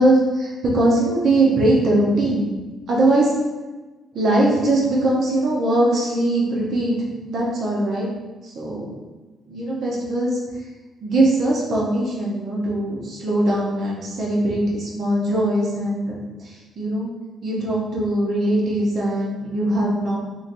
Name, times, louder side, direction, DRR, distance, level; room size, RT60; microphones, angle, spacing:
voice 1, 0.0-2.5 2.9-3.3 4.1-8.1 8.4-9.0 9.5-10.4 11.0-17.1 17.4-20.2, right 1 dB, 60° right, -4 dB, 0.8 m, -21 dB
2.8 x 2.3 x 2.6 m, 1.2 s
cardioid pair, 90°, 0 cm